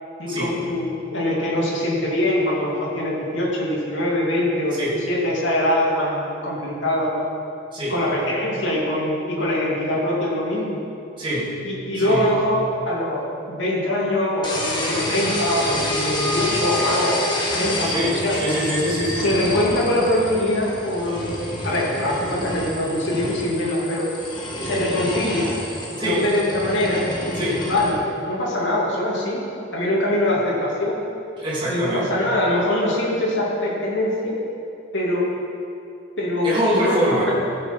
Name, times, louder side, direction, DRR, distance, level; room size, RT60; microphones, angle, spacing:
voice 1, 0.2-7.2 7.9-10.8 11.6-13.2 13.5-18.3 19.2-21.3 21.6-24.1 24.6-25.5 25.9-28.0 28.3-30.9 31.7-34.3 34.9-35.3 36.2-37.3, left 1 dB, 70° left, -5 dB, 2.7 m, -23 dB
voice 2, 11.2-11.5 12.0-12.3 17.9-19.3 26.0-26.2 27.3-27.6 31.4-32.2 36.4-37.3, equal, 25° right, -8 dB, 2.8 m, -24 dB
sound 1, 14.4-27.9, left 1 dB, 25° left, 1.5 m, -28 dB
15.5 x 6.6 x 5.4 m, 2.6 s
head